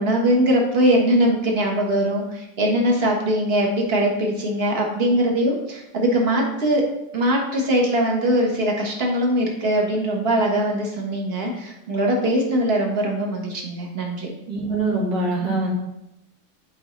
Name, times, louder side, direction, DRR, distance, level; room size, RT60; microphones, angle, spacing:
voice 1, 0.0-6.8 7.1-14.3, right 1 dB, 35° right, 0 dB, 1.5 m, -21 dB
voice 2, 14.5-15.7, right 2 dB, 75° right, -4 dB, 2.7 m, -23 dB
11.0 x 4.8 x 3.2 m, 0.88 s
omnidirectional pair, 2.0 m